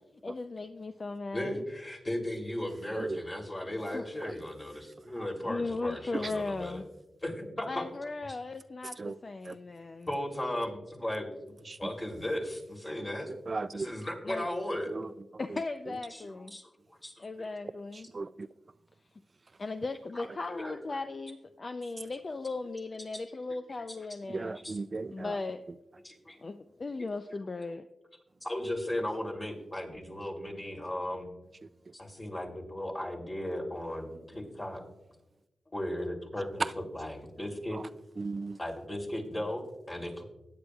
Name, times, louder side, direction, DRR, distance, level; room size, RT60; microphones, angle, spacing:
voice 1, 0.2-1.6 3.9-4.1 5.4-6.8 7.7-10.1 14.2-14.5 15.4-16.6 17.2-18.1 19.6-24.6 25.1-25.6 26.4-27.9, left 3 dB, 45° left, 0.5 m, -37 dB
voice 2, 1.3-6.8 7.2-7.8 10.1-11.3 11.8-13.3 13.7-14.9 16.1-17.5 20.1-20.7 24.5-24.8 26.0-26.4 28.4-31.3 31.9-34.8 35.7-37.8 38.6-40.2, left 1 dB, 30° left, 3.1 m, -36 dB
voice 3, 13.5-13.9 14.9-15.1 18.1-18.5 24.3-25.4 37.7-37.8 38.2-38.6, right 3 dB, 45° right, 0.3 m, -36 dB
17.5 x 9.5 x 2.4 m
cardioid pair, 60°, 0 cm